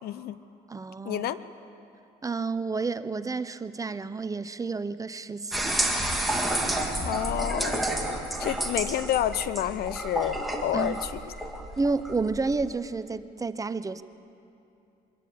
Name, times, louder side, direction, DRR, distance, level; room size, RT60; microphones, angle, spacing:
voice 1, 0.0-0.4 1.0-1.4 7.0-7.8 8.4-11.5, left 11 dB, 70° left, 14 dB, 0.8 m, -29 dB
voice 2, 0.7-1.3 2.2-6.0 10.7-11.0 11.8-14.0, right 4 dB, 20° right, 13 dB, 0.6 m, -30 dB
sound 1, 5.5-12.7, right 1 dB, ahead, 2.0 m, -30 dB
23.5 x 13.5 x 8.6 m, 2.7 s
cardioid pair, 110°, 17 cm